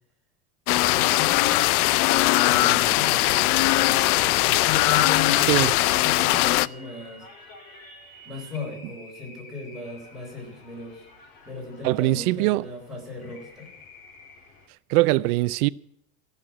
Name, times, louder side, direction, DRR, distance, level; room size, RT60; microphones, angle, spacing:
sound 1, 0.7-6.7, left 17 dB, 90° left, 0.5 m, -20 dB
voice 1, 0.8-1.4 2.4-7.3 8.2-11.1 11.4-13.7, left 4 dB, ahead, 4.0 m, -36 dB
sound 2, 1.3-14.7, left 2 dB, 70° left, 4.7 m, -50 dB
voice 2, 11.8-12.7 14.9-15.7, right 19 dB, 90° right, 0.5 m, -21 dB
15.0 x 6.6 x 8.6 m
cardioid pair, 165°, 43 cm